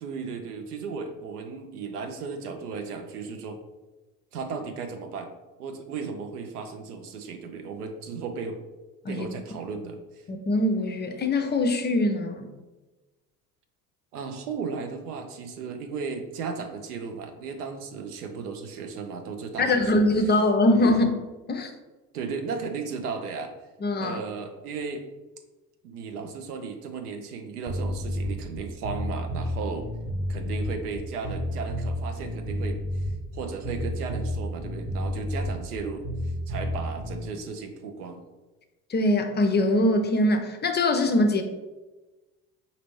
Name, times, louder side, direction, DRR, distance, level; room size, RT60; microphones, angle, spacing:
voice 1, 0.0-3.6 4.3-5.3 5.6-8.6 9.1-10.2 14.1-20.0 20.7-20.8 22.1-23.5 24.0-25.0 25.8-29.9 30.3-33.1 33.3-38.2, right 5 dB, 85° right, 6 dB, 0.6 m, -35 dB
voice 2, 10.3-12.5 19.6-21.7 23.8-24.2 38.9-41.4, left 1 dB, 25° left, 5 dB, 0.5 m, -23 dB
sound 1, 27.7-37.3, equal, 25° right, 0.9 m, -31 dB
5.0 x 2.7 x 3.0 m, 1.2 s
hypercardioid pair, 60°, 45 cm